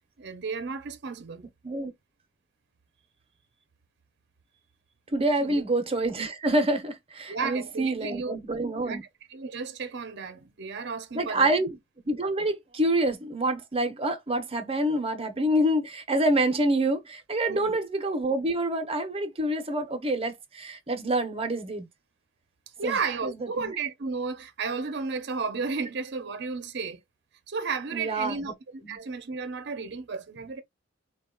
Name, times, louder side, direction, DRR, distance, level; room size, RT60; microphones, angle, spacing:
voice 1, 0.2-1.5 5.4-5.6 7.3-8.4 8.8-9.0 9.3-11.5 17.5-17.8 22.8-27.0 27.5-30.6, right 5 dB, 60° right, 0.7 m, -33 dB
voice 2, 5.1-9.0 11.1-11.8 12.0-21.9 22.8-23.7 27.9-28.5 28.9-29.0, right 1 dB, 30° right, 0.8 m, -27 dB
4.0 x 2.3 x 3.7 m
head